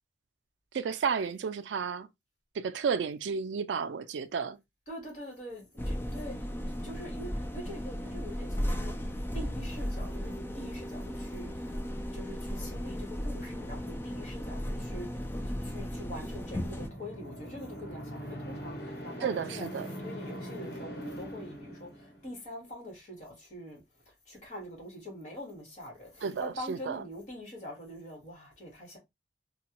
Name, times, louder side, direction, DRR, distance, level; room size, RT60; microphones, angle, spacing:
voice 1, 0.7-2.1 2.6-4.6 19.2-19.9 26.2-27.0, right 6 dB, 80° right, 0.4 m, -32 dB
voice 2, 4.9-6.5 6.8-11.8 12.1-15.3 15.6-29.0, equal, 40° left, 1.5 m, -44 dB
sound 1, 5.8-16.9, equal, 10° left, 0.4 m, -35 dB
sound 2, 15.7-22.4, equal, 60° left, 1.2 m, -42 dB
3.3 x 2.3 x 2.9 m
head